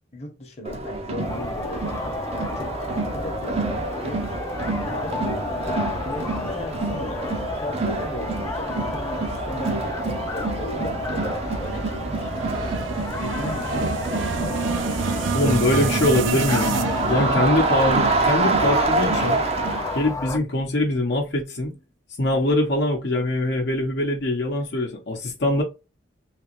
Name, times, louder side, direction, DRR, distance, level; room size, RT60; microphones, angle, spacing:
voice 1, 0.1-1.8 2.6-4.3 4.9-7.2 7.5-12.3 13.2-13.9, left 1 dB, 35° left, 1.0 m, -36 dB
Crowd, 0.6-20.1, right 3 dB, 30° right, 0.6 m, -27 dB
sound 1, 1.2-20.4, left 3 dB, 15° left, 0.3 m, -32 dB
sound 2, 10.5-18.9, right 5 dB, 80° right, 0.5 m, -30 dB
voice 2, 15.3-19.4 19.9-21.7 22.2-25.6, left 1 dB, 60° left, 0.8 m, -23 dB
3.4 x 2.9 x 3.0 m
head